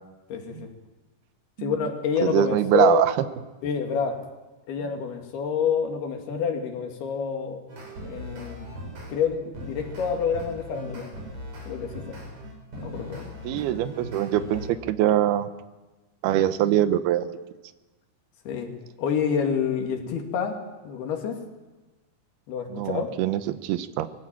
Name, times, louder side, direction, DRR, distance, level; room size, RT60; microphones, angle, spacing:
voice 1, 0.3-0.7 1.6-3.0 3.6-4.2 4.7-7.6 8.0-8.7 9.1-11.1 11.7-12.2 12.8-13.3 18.5-18.7 19.0-20.6 20.8-21.4 22.5-23.1, left 7 dB, 80° left, 3 dB, 4.3 m, -27 dB
voice 2, 2.2-3.1 13.4-15.5 16.2-17.3 22.7-24.1, right 12 dB, 80° right, 11 dB, 2.9 m, -23 dB
sound 1, 7.7-9.2 9.5-14.7, equal, 45° right, 6.5 m, -39 dB
22.5 x 15.0 x 9.0 m, 1.2 s
omnidirectional pair, 4.5 m